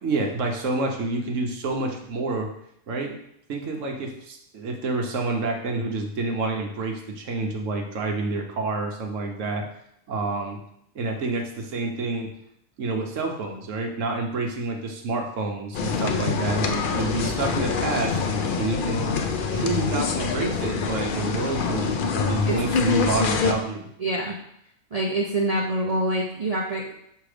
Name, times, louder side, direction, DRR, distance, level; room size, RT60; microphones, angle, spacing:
voice 1, 0.0-2.5 2.9-3.2 3.5-9.7 10.1-10.6 10.9-12.3 12.8-18.2 18.6-19.1 19.5-23.9, right 3 dB, 65° right, 2 dB, 1.2 m, -28 dB
sound 1, 15.7-23.5, left 5 dB, 60° left, 0.5 m, -25 dB
voice 2, 24.0-24.3 24.9-26.9, right 1 dB, 50° right, -1 dB, 0.4 m, -25 dB
6.1 x 3.4 x 4.9 m, 0.75 s
omnidirectional pair, 1.5 m